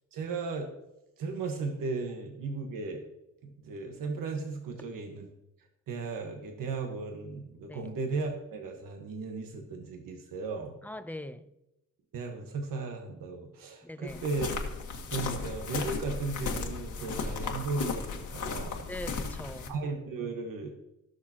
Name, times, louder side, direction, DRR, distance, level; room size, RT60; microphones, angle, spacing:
voice 1, 0.1-0.7 1.2-3.0 3.4-5.3 5.9-10.7 12.1-14.5 15.1-18.8 19.7-20.7, right 4 dB, 85° right, 1.4 m, -36 dB
voice 2, 10.8-11.5 13.8-14.3 18.9-19.8, left 1 dB, 5° left, 0.5 m, -41 dB
sound 1, 14.1-19.7, left 4 dB, 65° left, 1.5 m, -35 dB
18.5 x 6.6 x 2.9 m
cardioid pair, 125°, 32 cm